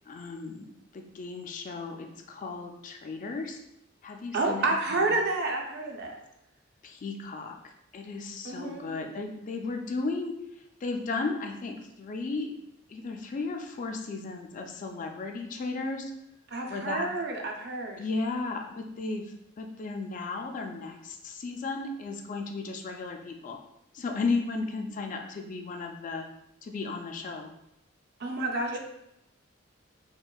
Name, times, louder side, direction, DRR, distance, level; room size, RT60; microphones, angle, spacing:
voice 1, 0.1-0.7 0.9-3.6 4.0-4.7 4.9-5.1 6.8-7.6 7.9-10.4 10.8-12.6 12.9-16.1 16.7-17.1 18.0-23.6 23.9-26.3 26.6-27.5, left 3 dB, 40° left, 4 dB, 0.3 m, -34 dB
voice 2, 4.3-6.2 8.4-8.9 16.5-18.0 28.2-28.8, right 2 dB, 55° right, 2 dB, 0.5 m, -29 dB
4.4 x 2.4 x 2.3 m, 0.80 s
head